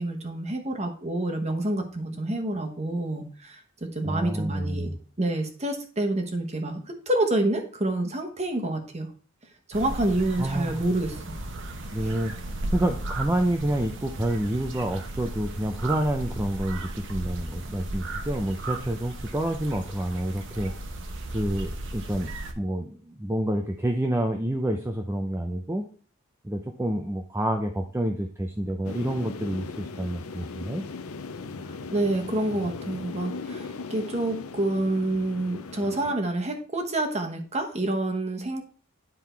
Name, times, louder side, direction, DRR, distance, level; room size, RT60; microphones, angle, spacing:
voice 1, 0.0-3.6 3.9-4.9 5.2-9.1 9.7-11.4 12.0-12.1 31.9-38.6, right 1 dB, 30° right, 4 dB, 1.2 m, -28 dB
voice 2, 4.0-4.9 10.4-10.8 11.9-20.7 21.3-25.9 26.4-30.8, right 1 dB, 10° right, 3 dB, 0.5 m, -28 dB
sound 1, 9.7-22.5, right 1 dB, 60° right, 1.0 m, -35 dB
sound 2, 28.8-36.1, left 4 dB, 85° left, 0.6 m, -38 dB
10.0 x 3.7 x 4.5 m, 0.43 s
head